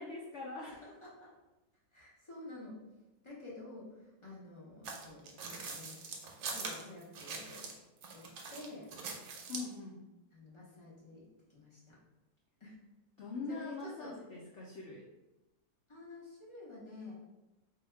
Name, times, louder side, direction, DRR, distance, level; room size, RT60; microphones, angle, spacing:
voice 1, 0.0-0.8 9.5-10.0 13.2-15.0, left 3 dB, 80° left, -3 dB, 0.6 m, -43 dB
voice 2, 0.6-1.3 1.9-2.8 3.2-6.0 6.5-7.6 8.1-8.9 10.3-12.0 12.6-12.8 13.5-14.2 15.9-17.1, left 2 dB, 40° left, -6 dB, 0.4 m, -50 dB
sound 1, 4.8-7.8 8.0-9.7, right 4 dB, 70° right, 1.0 m, -43 dB
3.4 x 2.3 x 4.4 m, 1.0 s
omnidirectional pair, 1.9 m